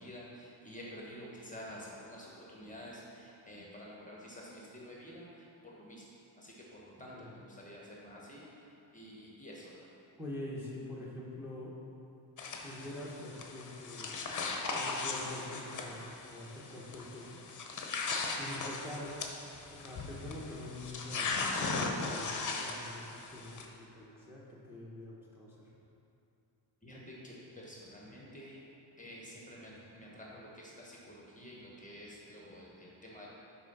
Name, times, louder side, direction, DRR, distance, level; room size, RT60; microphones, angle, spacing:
voice 1, 0.0-6.0 6.4-9.9 26.8-28.6 29.0-33.3, equal, 15° left, -4 dB, 1.1 m, -49 dB
voice 2, 10.2-11.7 12.6-14.1 14.7-17.4 18.3-19.2 19.7-25.6, left 1 dB, 5° right, -6 dB, 1.0 m, -45 dB
sound 1, 12.4-23.7, left 4 dB, 40° left, 0.7 m, -38 dB
6.1 x 4.6 x 5.4 m, 2.8 s
wide cardioid pair, 125°, 45 cm